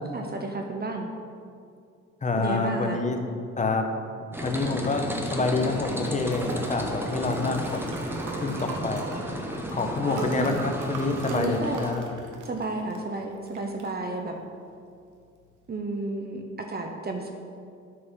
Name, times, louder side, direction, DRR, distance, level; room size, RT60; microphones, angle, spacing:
voice 1, 0.1-1.1 2.4-3.0 10.0-10.6 11.3-11.8 12.4-14.4 15.7-17.3, right 2 dB, 30° right, 3 dB, 0.8 m, -32 dB
voice 2, 2.2-3.2 3.6-3.9 4.4-8.0 8.4-9.1 9.7-12.0, left 3 dB, 25° left, 4 dB, 0.9 m, -27 dB
sound 1, 4.3-11.9, right 1 dB, 5° right, 1.1 m, -33 dB
Liquid, 5.5-15.7, right 3 dB, 80° right, 1.3 m, -41 dB
10.0 x 3.9 x 5.6 m, 2.3 s
cardioid pair, 90°, 30 cm